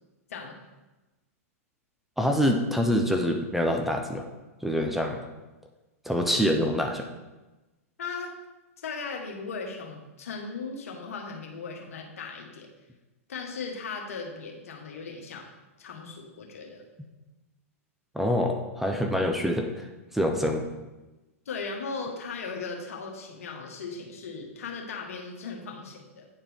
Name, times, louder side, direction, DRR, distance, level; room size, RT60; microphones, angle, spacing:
voice 1, 2.2-4.2 4.6-5.2 6.1-7.1 18.1-19.9 20.1-20.7, equal, 5° right, 3 dB, 0.6 m, -25 dB
voice 2, 8.0-8.3 8.8-12.7 13.3-15.5 15.8-16.8 21.4-26.3, left 4 dB, 70° left, 1 dB, 1.4 m, -37 dB
9.3 x 4.4 x 3.5 m, 1.1 s
hypercardioid pair, 110°, 8 cm